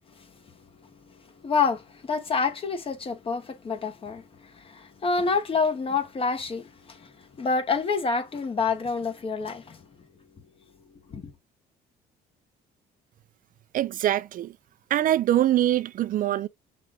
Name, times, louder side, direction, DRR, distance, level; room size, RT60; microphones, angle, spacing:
voice 1, 1.4-9.8 11.1-11.3, left 4 dB, 35° left, 1.1 m, -28 dB
voice 2, 13.7-14.5 14.9-16.5, right 12 dB, 55° right, 0.5 m, -23 dB
5.9 x 2.4 x 3.5 m
cardioid pair, 110°, 17 cm